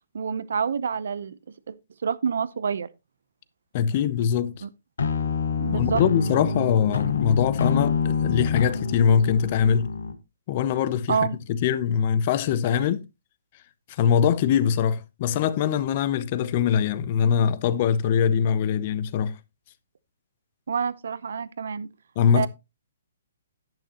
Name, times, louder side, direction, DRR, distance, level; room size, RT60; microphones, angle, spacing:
voice 1, 0.1-1.4 1.7-1.8 2.0-2.9 4.6-4.7 5.6-6.0 11.1-11.4 20.7-21.9 22.3-22.5, right 6 dB, 70° right, 0.8 m, -27 dB
voice 2, 3.7-4.6 5.7-9.9 10.5-11.2 11.5-13.1 13.9-19.4 22.2-22.5, left 8 dB, 35° left, 0.7 m, -22 dB
sound 1, 5.0-10.1, left 5 dB, 85° left, 1.6 m, -26 dB
10.5 x 8.9 x 2.9 m
hypercardioid pair, 165°, 0 cm